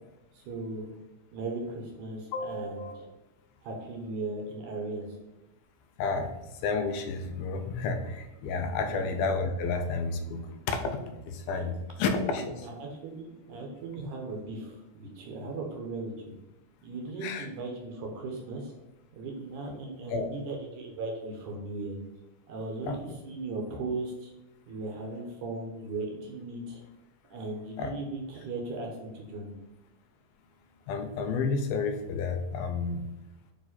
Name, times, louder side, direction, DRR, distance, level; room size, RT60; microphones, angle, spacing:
voice 1, 0.3-0.9 1.3-3.1 3.6-5.1 8.9-9.0 11.5-11.7 12.4-16.1 16.8-18.7 19.1-22.0 22.5-24.3 24.7-26.8 27.3-29.5, right 2 dB, 65° right, 1 dB, 2.2 m, -37 dB
voice 2, 2.3-3.0 6.0-12.7 17.2-17.5 20.1-20.3 22.8-22.9 27.8-27.9 30.9-33.1, left 4 dB, 80° left, 5 dB, 2.5 m, -31 dB
9.6 x 3.4 x 4.2 m, 0.97 s
omnidirectional pair, 4.4 m